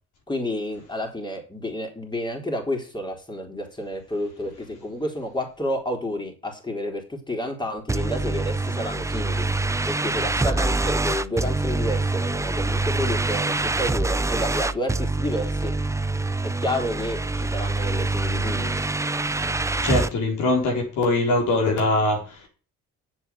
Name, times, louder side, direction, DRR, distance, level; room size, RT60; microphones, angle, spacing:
voice 1, 0.3-9.4 9.9-15.7 16.4-18.8, left 1 dB, 15° left, 3.9 m, -30 dB
sound 1, 7.9-20.1, right 2 dB, 10° right, 0.5 m, -25 dB
voice 2, 19.8-22.5, left 2 dB, 80° left, 4.3 m, -22 dB
8.1 x 7.2 x 8.5 m
cardioid pair, 90°, 30 cm